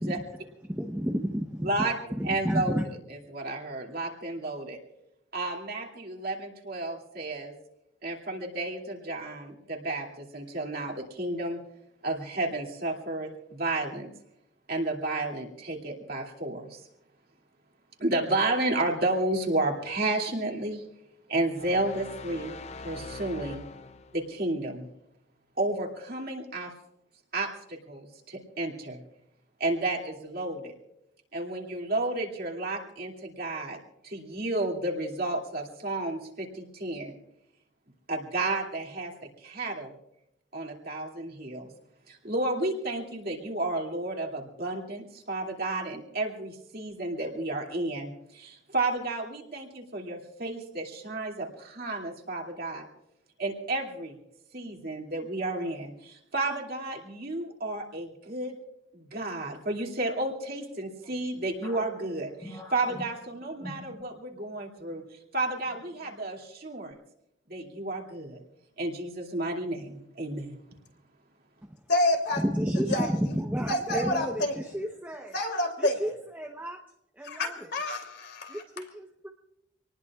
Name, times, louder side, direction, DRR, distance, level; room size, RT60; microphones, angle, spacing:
voice 1, 0.0-1.9 2.2-2.8 71.6-71.8 72.4-75.3 75.8-76.8 77.1-77.7 78.5-79.3, equal, 10° right, 1 dB, 0.9 m, -31 dB
voice 2, 2.3-2.8 3.3-4.8 5.3-7.5 8.0-11.6 12.0-14.1 14.7-16.8 18.0-20.8 21.3-22.6 22.8-23.6 24.1-24.9 25.6-26.7 27.3-29.0 29.6-30.7 31.3-33.8 34.0-37.1 38.1-39.1 39.4-39.9 40.5-41.7 42.1-52.8 53.4-54.2 54.5-58.6 58.9-65.0 65.3-67.0 67.5-68.4 68.8-70.6, right 2 dB, 50° right, 0 dB, 2.5 m, -32 dB
sound 1, 21.6-24.3, left 3 dB, 35° left, 0.5 m, -43 dB
sound 2, 61.6-64.5 64.8-65.0 65.6-66.1, equal, 20° left, 2.7 m, -45 dB
voice 3, 71.9-72.4 72.9-73.1 73.7-74.5 75.3-75.9 77.2-78.6, left 1 dB, 55° left, 4 dB, 2.9 m, -28 dB
26.5 x 19.5 x 2.4 m, 0.82 s
head